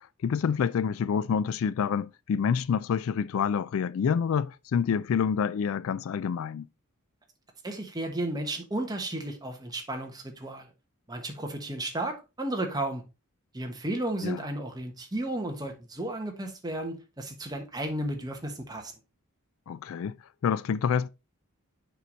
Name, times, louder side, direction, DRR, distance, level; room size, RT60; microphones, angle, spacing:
voice 1, 0.0-6.7 14.2-14.4 19.7-20.2 20.4-21.1, left 7 dB, 65° left, 0.3 m, -27 dB
voice 2, 7.6-10.7 11.1-13.0 13.5-18.9, right 1 dB, 20° right, 1.2 m, -33 dB
6.7 x 4.8 x 3.9 m
head